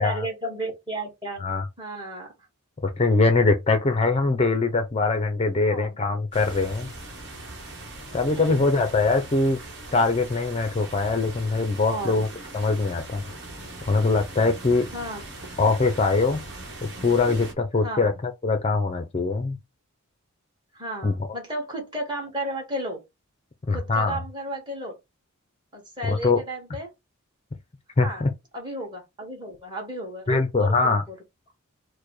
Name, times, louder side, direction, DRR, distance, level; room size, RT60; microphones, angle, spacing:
voice 1, 0.0-1.4 1.8-2.3 5.6-6.0 8.2-8.7 11.9-12.2 14.9-15.2 17.8-18.2 20.7-23.0 23.7-24.9 25.7-26.9 28.0-28.2 28.5-31.0, right 1 dB, 20° right, 1.7 m, -33 dB
voice 2, 3.0-6.9 8.1-9.6 9.9-12.3 12.5-13.2 13.9-14.9 15.6-16.4 16.8-19.6 21.0-21.1 23.7-24.2 26.0-26.4 28.0-28.3 30.3-31.0, left 3 dB, 25° left, 0.5 m, -22 dB
sound 1, 6.3-17.5, right 2 dB, 50° right, 1.3 m, -40 dB
4.6 x 2.2 x 4.7 m
head